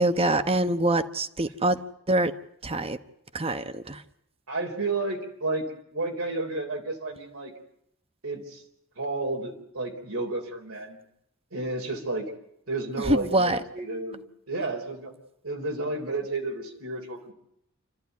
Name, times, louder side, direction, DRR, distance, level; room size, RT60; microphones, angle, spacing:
voice 1, 0.0-2.3 2.6-3.0 3.3-4.0 13.1-13.6, right 1 dB, 30° right, 1.1 m, -25 dB
voice 2, 4.5-7.5 8.2-8.6 9.0-11.0 11.5-12.3 12.7-15.1 15.4-17.3, right 2 dB, 90° right, 4.0 m, -31 dB
28.0 x 14.0 x 9.5 m
head